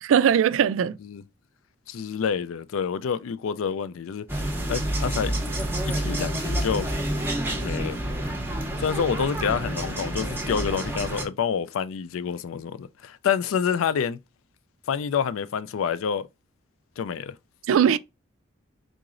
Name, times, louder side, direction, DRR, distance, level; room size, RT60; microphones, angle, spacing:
voice 1, 0.0-1.0 17.7-18.0, right 8 dB, 80° right, 0.3 m, -20 dB
voice 2, 1.9-5.4 5.8-6.9 7.6-8.0 8.8-14.2 14.9-16.3 17.0-17.3, left 7 dB, 85° left, 0.4 m, -28 dB
sound 1, 4.3-11.3, right 1 dB, 10° right, 0.6 m, -28 dB
3.7 x 3.0 x 2.5 m
head